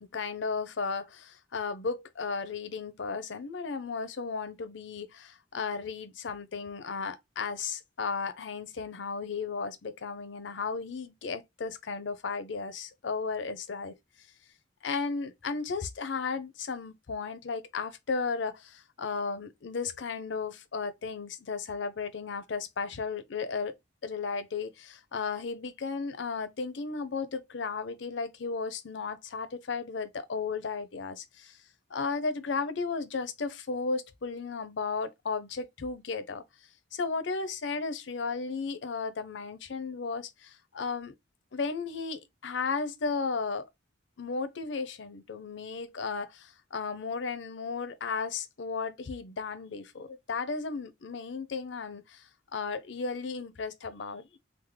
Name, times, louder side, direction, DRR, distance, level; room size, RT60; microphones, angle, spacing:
voice 1, 0.0-13.9 14.8-23.8 24.0-31.6 31.9-36.4 36.9-41.1 41.5-43.7 44.2-54.4, left 4 dB, 65° left, 0.5 m, -34 dB
3.5 x 2.0 x 3.2 m
head